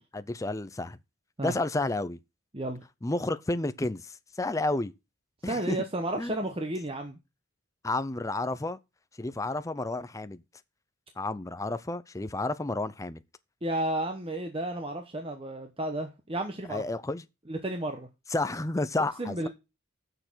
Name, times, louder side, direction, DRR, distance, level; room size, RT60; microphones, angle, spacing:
voice 1, 0.1-1.0 1.4-2.2 3.0-4.9 5.4-5.8 6.2-6.5 7.8-8.8 9.2-10.4 11.2-13.2 16.7-17.2 18.3-19.5, left 2 dB, 15° left, 0.5 m, -31 dB
voice 2, 5.4-7.2 13.6-16.8 17.5-18.1 19.2-19.5, right 1 dB, 25° right, 1.0 m, -32 dB
7.9 x 6.8 x 6.2 m
head